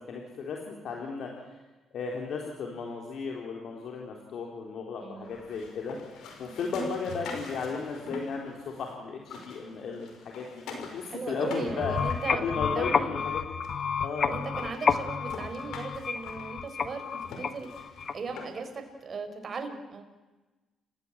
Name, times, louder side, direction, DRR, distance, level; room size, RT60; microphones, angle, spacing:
voice 1, 0.1-1.3 1.9-6.0 6.4-11.9 12.4-13.3 14.0-14.3, left 5 dB, 70° left, 0 dB, 4.0 m, -35 dB
voice 2, 5.0-5.4 6.4-6.7 11.0-13.2 14.3-20.0, right 4 dB, 45° right, 6 dB, 4.7 m, -38 dB
sound 1, 5.2-8.9 9.2-13.0 13.6-13.7 14.2-14.3 14.6-18.8, left 3 dB, 85° left, 5.3 m, -44 dB
sound 2, 11.7-18.5, left 6 dB, 50° left, 1.3 m, -30 dB
29.5 x 16.5 x 9.0 m, 1.2 s
cardioid pair, 90°, 0 cm